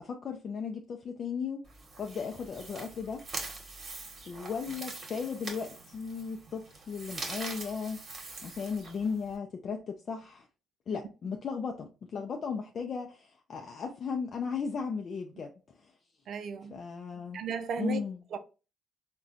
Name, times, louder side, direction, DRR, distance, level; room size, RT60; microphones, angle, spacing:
voice 1, 0.0-1.7 2.0-3.3 4.3-8.0 8.4-10.5 10.9-15.9 16.7-17.4 17.8-18.2, left 5 dB, 55° left, 0.4 m, -36 dB
sound 1, 1.6-9.4, right 3 dB, 45° right, 1.1 m, -43 dB
voice 2, 16.3-16.8 17.3-18.0 18.3-18.4, right 7 dB, 65° right, 0.4 m, -35 dB
3.6 x 2.2 x 2.4 m
cardioid pair, 90°, 0 cm